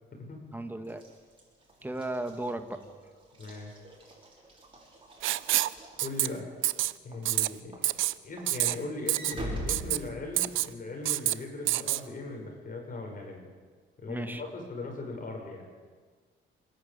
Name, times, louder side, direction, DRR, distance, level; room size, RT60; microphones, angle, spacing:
voice 1, 0.5-1.0 1.8-2.9 14.1-14.4, right 1 dB, 10° right, 7 dB, 2.0 m, -35 dB
Walk footsteps / Slam, 0.9-6.6 7.1-7.4 7.7-10.7, right 1 dB, 25° right, 6.6 m, -43 dB
voice 2, 3.4-3.7 6.0-6.5 7.0-7.8 8.2-13.4 14.0-15.6, left 2 dB, 45° left, 1 dB, 6.5 m, -39 dB
Writing, 5.2-5.7 6.0-6.3 6.6-6.9 7.2-7.5 7.8-8.1 8.5-8.7 9.1-9.3 9.7-10.0 10.4-10.7 11.0-11.3 11.7-12.0, right 16 dB, 85° right, 0.6 m, -27 dB
28.0 x 11.0 x 8.8 m, 1.5 s
cardioid pair, 90°, 20 cm